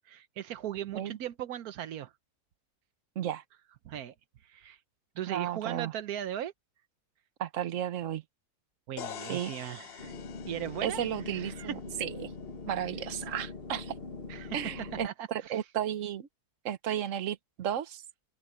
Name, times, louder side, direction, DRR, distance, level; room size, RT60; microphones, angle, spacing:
voice 1, 0.0-2.1 3.8-4.1 4.4-4.8 5.1-6.5 8.9-10.1 10.5-11.0 11.3-11.7 14.3-14.6 15.0-15.6, right 11 dB, 85° right, 1.3 m, -38 dB
voice 2, 5.3-5.9 7.4-8.2 9.3-9.5 10.8-12.3 12.6-13.9 14.5-16.3 16.6-18.0, right 10 dB, 60° right, 1.3 m, -33 dB
sound 1, 9.0-12.8, left 10 dB, 60° left, 0.6 m, -47 dB
sound 2, 10.0-15.1, left 4 dB, 40° left, 2.1 m, -42 dB
open air
omnidirectional pair, 1.6 m